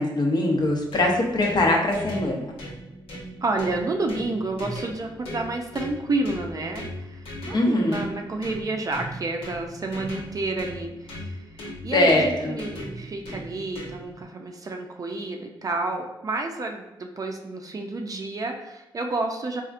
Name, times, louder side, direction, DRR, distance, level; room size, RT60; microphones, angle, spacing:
voice 1, 0.0-2.5 7.5-8.0 11.9-12.6, left 2 dB, 50° left, 0 dB, 0.7 m, -22 dB
sound 1, 0.5-14.2, equal, 80° left, 1.1 m, -38 dB
voice 2, 3.4-19.6, right 2 dB, 40° right, 3 dB, 0.4 m, -30 dB
4.2 x 2.4 x 2.5 m, 0.96 s
cardioid pair, 100°, 9 cm